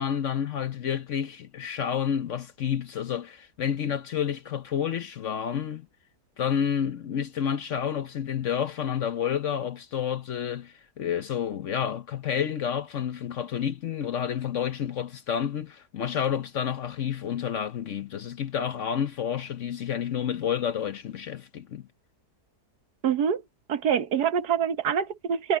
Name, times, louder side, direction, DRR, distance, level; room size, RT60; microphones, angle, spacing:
voice 1, 0.0-5.9 6.4-21.9, left 8 dB, 55° left, 1.0 m, -30 dB
voice 2, 23.0-23.4 23.7-25.6, right 8 dB, 75° right, 1.6 m, -25 dB
omnidirectional pair, 1.7 m